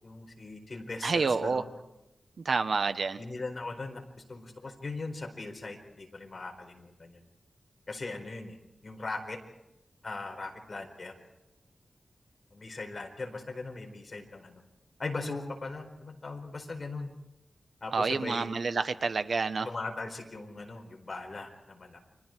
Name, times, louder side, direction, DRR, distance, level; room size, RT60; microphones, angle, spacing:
voice 1, 0.0-1.7 3.2-7.2 7.9-8.6 8.8-9.4 10.0-11.1 12.5-14.6 15.0-17.1 17.8-18.5 19.6-22.0, left 3 dB, 45° left, 3 dB, 4.5 m, -39 dB
voice 2, 1.0-1.6 2.4-3.2 17.9-19.7, right 4 dB, 70° right, 10 dB, 1.2 m, -28 dB
30.0 x 24.5 x 4.6 m, 0.91 s
wide cardioid pair, 135°, 0 cm